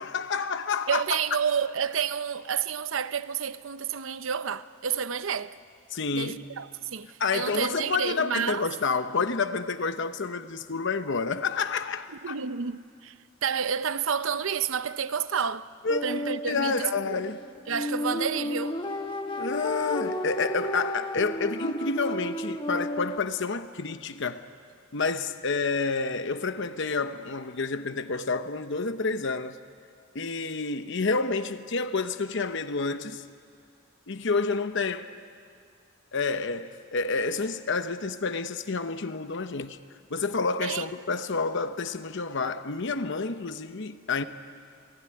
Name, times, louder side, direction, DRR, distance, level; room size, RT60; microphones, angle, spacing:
voice 1, 0.0-1.0 5.9-6.5 7.2-12.3 15.8-16.0 16.5-17.4 19.4-24.5 24.9-29.6 30.1-33.2 34.1-35.1 36.1-39.8 40.1-44.3, left 4 dB, 60° left, 0.9 m, -29 dB
voice 2, 0.9-5.6 6.1-8.6 12.2-13.1 13.4-15.7 16.0-16.8 17.0-17.1 17.7-18.8 40.6-40.8, right 7 dB, 65° right, 0.7 m, -30 dB
sound 1, 15.9-23.2, left 1 dB, 25° left, 1.1 m, -33 dB
27.5 x 19.0 x 9.8 m
head